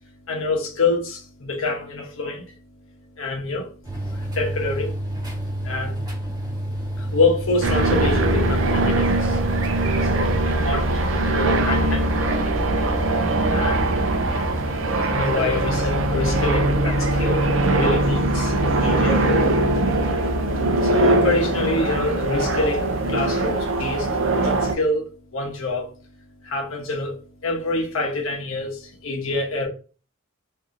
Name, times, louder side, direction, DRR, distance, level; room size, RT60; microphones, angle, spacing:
voice 1, 0.3-2.5 3.2-3.7 4.1-5.0 5.6-6.0 7.0-9.4 10.0-12.1 13.5-13.9 15.0-19.4 20.8-25.9 26.4-27.2 27.4-29.7, left 2 dB, 85° left, 0.9 m, -26 dB
sound 1, 3.8-10.4, equal, 20° right, 1.1 m, -29 dB
sound 2, 7.6-24.8, right 2 dB, 75° right, 0.5 m, -21 dB
2.8 x 2.7 x 2.5 m
head